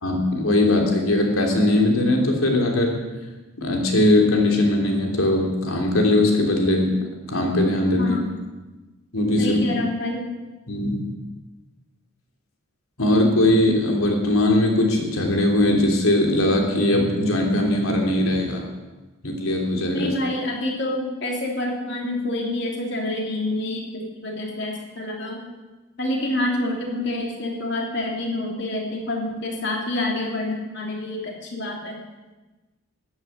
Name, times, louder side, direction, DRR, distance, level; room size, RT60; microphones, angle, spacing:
voice 1, 0.0-3.0 3.6-7.0 7.3-8.2 9.1-9.6 10.7-11.0 13.0-18.6 19.2-20.1, left 1 dB, 80° left, 1 dB, 3.2 m, -20 dB
voice 2, 8.0-8.3 9.4-10.2 19.9-25.4 26.0-32.0, left 1 dB, 55° left, 0 dB, 3.1 m, -27 dB
13.5 x 9.8 x 8.6 m, 1.2 s
head